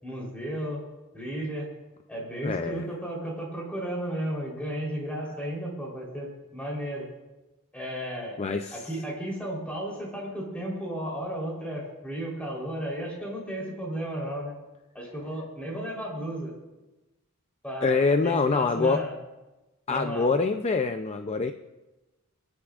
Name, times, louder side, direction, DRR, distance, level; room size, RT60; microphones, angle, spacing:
voice 1, 0.0-0.8 1.1-1.7 2.1-7.1 7.7-8.4 8.7-14.5 14.9-16.5 17.6-19.1 19.9-20.4, right 1 dB, 5° left, -3 dB, 3.6 m, -34 dB
voice 2, 2.4-2.9 8.4-8.9 17.8-19.0 19.9-21.5, left 4 dB, 30° left, 7 dB, 0.4 m, -25 dB
28.0 x 10.5 x 2.4 m, 1.1 s
head